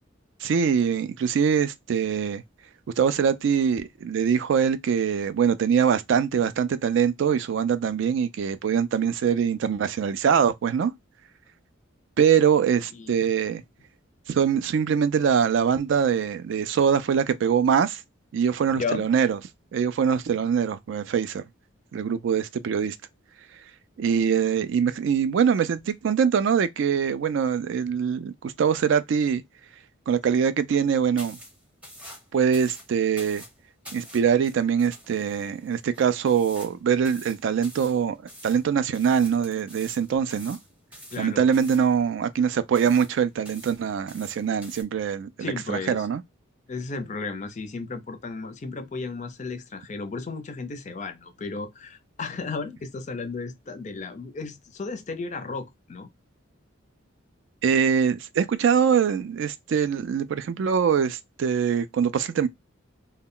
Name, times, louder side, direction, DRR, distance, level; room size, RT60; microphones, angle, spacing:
voice 1, 0.4-2.4 3.0-10.9 12.2-13.6 14.3-18.0 18.3-19.4 19.7-21.4 21.9-23.0 24.0-29.4 30.1-31.4 32.3-33.4 33.9-38.2 38.4-40.6 41.2-46.2 57.6-62.5, right 7 dB, 65° right, 0.3 m, -23 dB
voice 2, 12.9-13.3 18.8-19.1 41.1-41.5 45.4-46.1 46.7-56.1, left 4 dB, 35° left, 0.4 m, -34 dB
sound 1, 31.2-44.8, equal, 5° right, 0.6 m, -47 dB
2.1 x 2.1 x 3.6 m
head